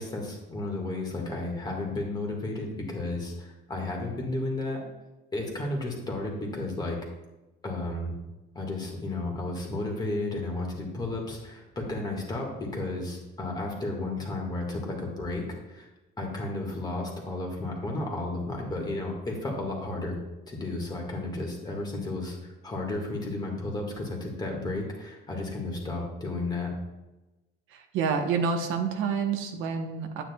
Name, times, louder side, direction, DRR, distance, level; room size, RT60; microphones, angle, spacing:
voice 1, 0.0-4.8 5.3-7.0 7.6-8.2 8.5-15.9 16.2-20.2 20.5-26.8, left 2 dB, 20° left, 0 dB, 1.7 m, -33 dB
voice 2, 27.7-30.2, right 6 dB, 70° right, 4 dB, 1.0 m, -28 dB
10.0 x 9.0 x 2.3 m, 1.1 s
cardioid pair, 150°, 21 cm